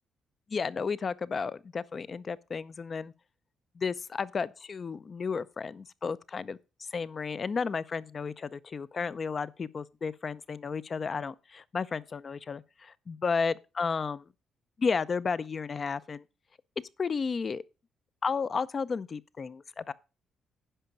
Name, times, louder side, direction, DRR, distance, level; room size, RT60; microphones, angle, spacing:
voice 1, 0.5-3.1 3.8-6.6 6.9-14.2 14.8-16.2 17.0-17.6 18.2-19.9, left 5 dB, 40° left, 0.5 m, -33 dB
10.0 x 5.8 x 5.2 m
cardioid pair, 90°, 0 cm